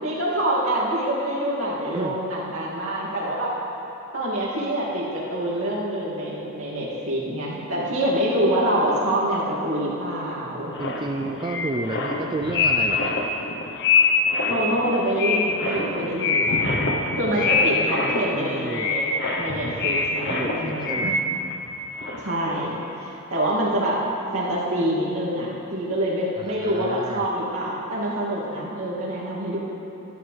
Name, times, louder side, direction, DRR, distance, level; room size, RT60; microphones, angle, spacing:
voice 1, 0.0-3.5 4.1-10.7 14.5-16.6 17.2-19.0 19.4-21.1 22.2-24.0 24.3-29.6, right 1 dB, 65° right, -7 dB, 2.6 m, -26 dB
sound 1, 10.7-21.7 21.9-22.5, left 4 dB, 55° left, 1.0 m, -24 dB
voice 2, 10.8-13.1 17.5-19.0 20.3-21.2 26.4-27.2, right 2 dB, 20° right, 2 dB, 0.3 m, -31 dB
13.0 x 12.0 x 3.4 m, 2.9 s
head